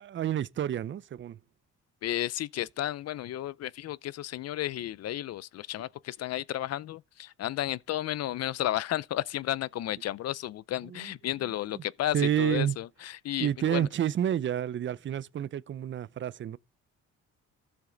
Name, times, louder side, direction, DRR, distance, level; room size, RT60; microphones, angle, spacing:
voice 1, 0.0-1.4 10.9-11.1 11.7-11.8 12.1-12.8 13.4-16.6, right 10 dB, 40° right, 0.5 m, -29 dB
voice 2, 2.0-13.9, left 13 dB, 55° left, 0.5 m, -33 dB
13.5 x 7.1 x 3.9 m
cardioid pair, 90°, 30 cm